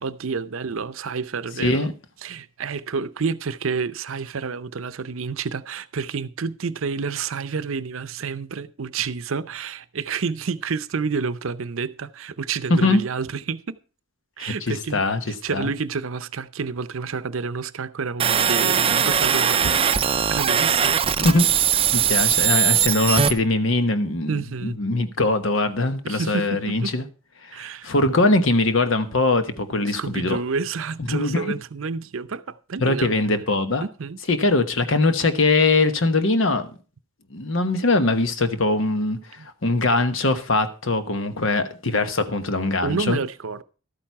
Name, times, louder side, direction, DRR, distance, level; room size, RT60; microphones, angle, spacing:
voice 1, 0.0-1.9 2.2-13.8 14.4-21.0 24.3-24.8 26.0-27.0 27.5-27.9 29.9-33.1 33.8-34.2 39.4-39.5 42.8-43.6, right 5 dB, 75° right, 0.6 m, -29 dB
voice 2, 1.6-1.9 12.7-13.0 14.4-15.2 15.5-15.7 21.2-21.4 21.9-27.0 27.4-27.6 27.8-30.4 31.1-31.5 32.8-33.8 34.3-36.7 37.3-43.2, left 2 dB, 70° left, 1.1 m, -21 dB
sound 1, 18.2-23.3, right 8 dB, 25° right, 0.5 m, -20 dB
12.5 x 8.8 x 4.7 m
head